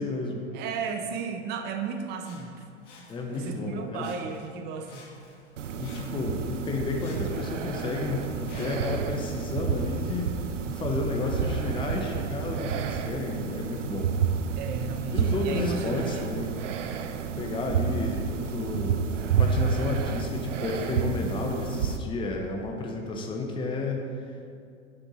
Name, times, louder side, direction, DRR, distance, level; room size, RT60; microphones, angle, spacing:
voice 1, 0.0-0.5 3.1-4.1 5.7-10.4 10.7-14.1 15.1-16.5 17.4-19.0 19.4-24.5, left 3 dB, 15° left, 2 dB, 0.7 m, -31 dB
voice 2, 0.5-2.7 3.3-5.0 14.6-16.2, right 5 dB, 30° right, 5 dB, 0.5 m, -34 dB
Sawing, 2.2-3.7 4.0-4.6 4.8-6.5 7.0-9.0 9.6-9.7, left 3 dB, 75° left, 1.4 m, -52 dB
sound 1, 5.6-22.0, right 6 dB, 85° right, 0.5 m, -30 dB
7.6 x 6.0 x 3.0 m, 2.3 s
hypercardioid pair, 95°, 36 cm